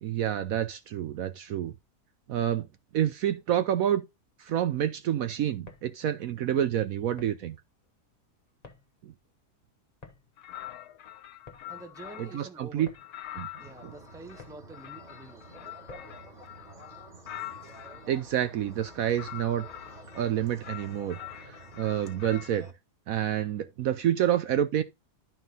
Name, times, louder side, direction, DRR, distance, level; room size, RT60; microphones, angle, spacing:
voice 1, 0.0-1.7 2.3-2.7 2.9-4.0 4.4-7.6 9.0-9.1 12.2-12.9 13.3-13.5 13.8-13.9 18.1-19.7 20.2-22.7 23.1-24.8, right 10 dB, 65° right, 1.0 m, -28 dB
sound 1, 5.5-16.3, left 4 dB, 25° left, 1.1 m, -55 dB
sound 2, 10.4-12.5 12.9-18.1 18.7-20.3 20.6-22.6, left 13 dB, 70° left, 1.3 m, -44 dB
voice 2, 11.7-12.9 13.6-15.5, right 3 dB, 5° right, 0.7 m, -47 dB
sound 3, 13.6-22.7, right 2 dB, 25° right, 1.8 m, -50 dB
11.0 x 4.5 x 4.0 m
omnidirectional pair, 1.7 m